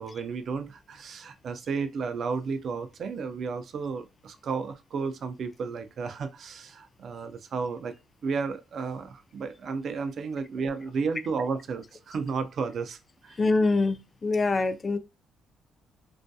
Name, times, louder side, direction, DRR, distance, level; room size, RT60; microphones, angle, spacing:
voice 1, 0.0-7.9 8.2-13.4, right 5 dB, 55° right, 0.3 m, -33 dB
voice 2, 13.4-15.0, left 3 dB, 30° left, 0.4 m, -24 dB
2.2 x 2.2 x 2.6 m
cardioid pair, 105°, 0 cm